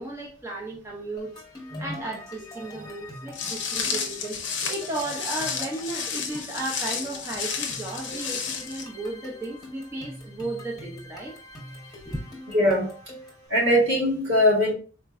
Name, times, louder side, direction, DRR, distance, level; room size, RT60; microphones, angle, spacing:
voice 1, 0.0-1.3 1.8-4.4 4.7-11.3 12.1-12.2, right 2 dB, 15° right, 0.6 m, -34 dB
sound 1, 1.2-13.5, left 1 dB, 20° left, 1.0 m, -45 dB
Walk footsteps, 3.3-8.8, left 6 dB, 65° left, 0.6 m, -31 dB
voice 2, 12.5-12.9 13.5-14.7, equal, 75° right, 1.7 m, -21 dB
4.1 x 2.5 x 2.2 m
head